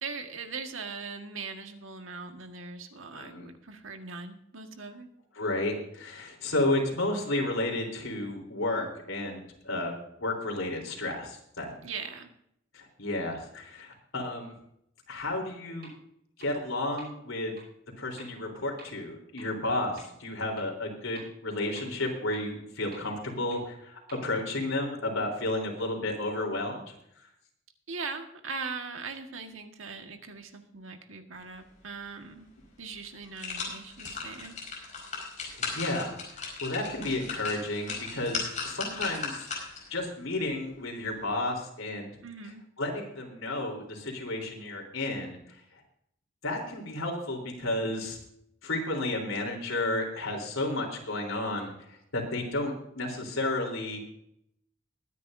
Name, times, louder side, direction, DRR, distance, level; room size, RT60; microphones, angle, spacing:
voice 1, 0.0-5.1 11.8-12.3 27.9-32.5 32.8-34.6 42.2-42.6, right 4 dB, 80° right, 5 dB, 1.7 m, -40 dB
voice 2, 3.1-3.5 5.4-9.9 10.2-11.8 12.7-14.5 15.1-15.9 16.4-17.5 18.0-26.9 35.4-36.1 36.6-39.5 39.9-42.1 42.8-45.4 45.7-45.8 46.4-48.2 48.6-54.0, left 2 dB, 85° left, 1 dB, 3.8 m, -32 dB
sound 1, 15.8-15.9 16.4-16.5 17.0-17.1 17.6-17.7 18.2-18.3 18.8-18.9 19.4-19.5 20.0-20.1 20.6-20.7 21.2-21.3 21.8-21.9 22.3-22.4 22.9-23.0 23.5-23.6 24.1-24.2, right 3 dB, 50° right, 5.8 m, -49 dB
sound 2, 32.5-32.6 33.0-39.9 40.3-40.4, left 4 dB, 35° left, 5.0 m, -37 dB
21.5 x 10.0 x 2.7 m, 0.73 s
head